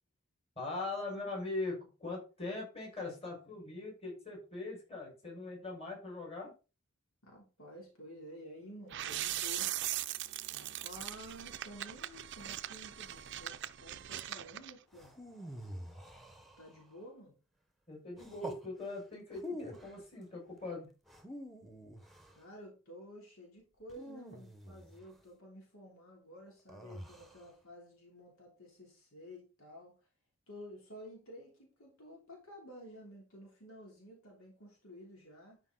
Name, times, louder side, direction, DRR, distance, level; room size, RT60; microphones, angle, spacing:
voice 1, 0.6-6.5 17.9-20.9, left 2 dB, 30° left, -2 dB, 5.8 m, -41 dB
voice 2, 7.2-10.0 10.5-15.1 16.6-17.3 22.3-29.9 30.5-35.6, equal, 75° left, -1 dB, 3.4 m, -52 dB
sound 1, 8.9-14.7, right 13 dB, 55° right, 0.5 m, -40 dB
sound 2, 14.9-16.9 18.2-18.7 19.3-20.0 21.1-22.4 23.9-25.1 26.7-27.5, equal, ahead, 1.2 m, -47 dB
12.0 x 5.4 x 3.9 m, 0.32 s
head